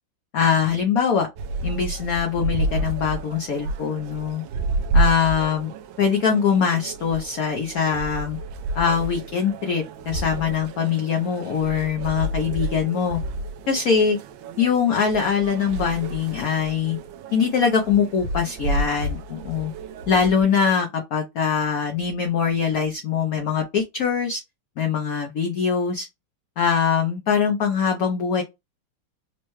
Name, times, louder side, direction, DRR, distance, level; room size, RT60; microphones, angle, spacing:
voice 1, 0.3-1.3 1.6-4.4 4.9-5.7 6.0-8.4 8.7-13.2 13.7-14.2 14.6-17.0 17.3-19.7 20.1-24.4 24.8-26.1 26.6-28.4, left 6 dB, 85° left, 0.7 m, -22 dB
sound 1, 1.4-20.4, right 2 dB, 75° right, 1.1 m, -30 dB
4.5 x 2.1 x 3.0 m
omnidirectional pair, 2.4 m